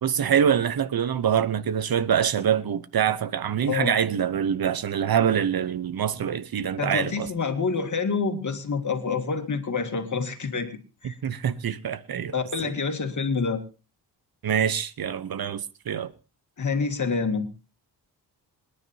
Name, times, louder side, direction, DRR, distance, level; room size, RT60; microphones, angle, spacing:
voice 1, 0.0-7.3 11.0-12.3 12.6-12.7 14.4-16.1, right 8 dB, 60° right, 0.9 m, -25 dB
voice 2, 6.8-10.7 11.0-11.2 12.3-13.6 16.6-17.5, left 5 dB, 45° left, 2.2 m, -27 dB
26.5 x 9.9 x 2.8 m
cardioid pair, 80°, 40 cm